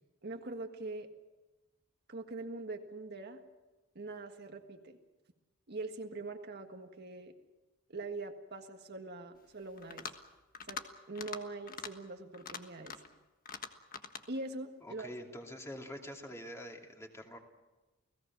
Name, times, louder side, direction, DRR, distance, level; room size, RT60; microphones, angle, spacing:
voice 1, 0.2-1.1 2.1-3.4 3.9-5.0 5.7-7.3 7.9-10.1 10.7-10.8 11.1-12.9 14.3-15.1, right 2 dB, 50° right, 4 dB, 1.7 m, -43 dB
sound 1, 9.8-10.2 10.5-10.9 11.1-11.4 11.7-11.9 12.3-13.1 13.5-14.2, left 6 dB, 45° left, 1.5 m, -43 dB
voice 2, 14.8-17.4, equal, 15° left, 1 dB, 2.7 m, -46 dB
30.0 x 18.0 x 6.1 m, 1.2 s
head